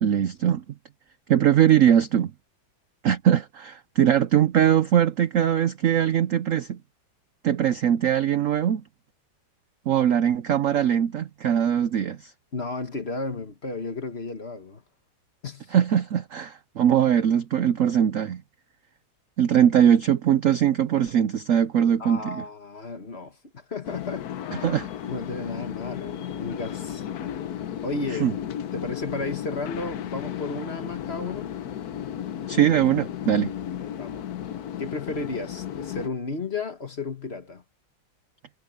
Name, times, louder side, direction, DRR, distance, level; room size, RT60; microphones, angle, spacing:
voice 1, 0.0-0.6 1.3-2.3 3.0-6.8 7.4-8.8 9.9-12.3 15.7-18.4 19.4-22.4 24.6-24.9 28.2-28.3 32.5-33.5, right 9 dB, 75° right, 0.7 m, -21 dB
voice 2, 12.5-14.8 15.4-15.7 22.0-24.3 25.1-27.1 27.8-28.3 28.7-31.5 33.8-34.3 34.8-37.6, left 3 dB, 35° left, 1.6 m, -33 dB
sound 1, 23.8-36.1, left 10 dB, 60° left, 1.2 m, -34 dB
omnidirectional pair, 2.2 m